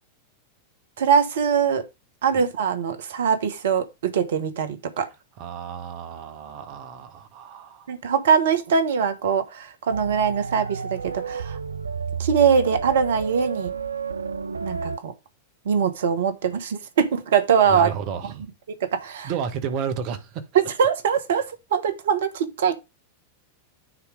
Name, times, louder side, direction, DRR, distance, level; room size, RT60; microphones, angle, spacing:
voice 1, 1.0-1.9 2.2-5.1 7.9-11.6 12.2-13.7 14.6-15.1 15.6-17.9 18.8-19.3 20.5-22.7, right 7 dB, 60° right, 1.3 m, -22 dB
voice 2, 5.4-7.9 17.7-18.5 19.2-20.5, right 7 dB, 45° right, 1.3 m, -32 dB
sound 1, 9.9-15.0, right 6 dB, 75° right, 0.5 m, -31 dB
9.6 x 3.3 x 5.1 m
figure-of-eight pair, 90°, 0 cm